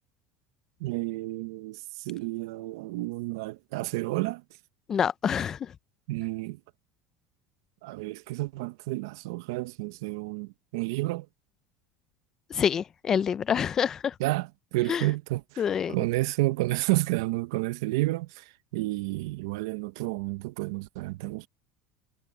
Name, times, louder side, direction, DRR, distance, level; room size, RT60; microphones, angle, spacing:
voice 1, 0.8-4.4 6.1-6.6 7.8-11.3 14.2-15.6 15.9-21.5, right 19 dB, 80° right, 0.7 m, -30 dB
voice 2, 4.9-5.7 12.5-14.1 14.9-15.0 15.6-15.9, left 8 dB, 20° left, 0.4 m, -27 dB
cardioid pair, 170°, 2 cm